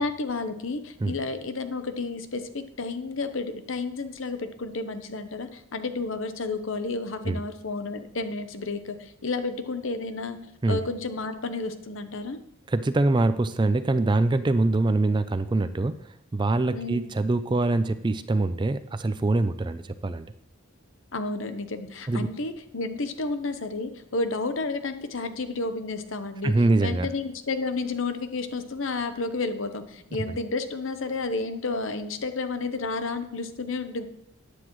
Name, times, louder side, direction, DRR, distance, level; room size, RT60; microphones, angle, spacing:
voice 1, 0.0-10.4 10.7-12.4 16.7-17.1 21.1-26.5 26.8-34.0, left 3 dB, 65° left, 9 dB, 0.9 m, -31 dB
voice 2, 12.7-15.9 16.3-20.3 22.1-22.3 26.4-27.1 30.3-30.4, right 2 dB, 20° right, 12 dB, 0.3 m, -24 dB
13.0 x 9.8 x 3.1 m, 0.77 s
head